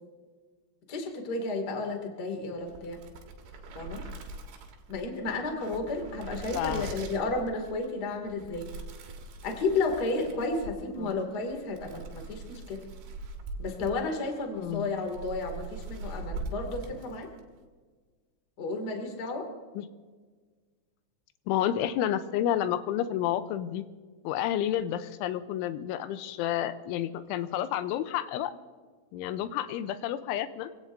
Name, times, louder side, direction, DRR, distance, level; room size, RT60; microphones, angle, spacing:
voice 1, 0.9-3.0 3.7-4.1 4.9-8.7 9.4-12.8 13.6-17.3 18.6-19.5, left 3 dB, 35° left, 3 dB, 1.6 m, -32 dB
sound 1, 2.6-17.5, right 3 dB, 75° right, 3.8 m, -42 dB
voice 2, 6.5-6.9 11.0-11.1 14.6-14.9 19.8-19.9 21.5-23.8 24.2-28.6 29.1-30.7, left 11 dB, 85° left, 11 dB, 3.1 m, -30 dB
27.0 x 17.0 x 2.7 m, 1.4 s
omnidirectional pair, 5.7 m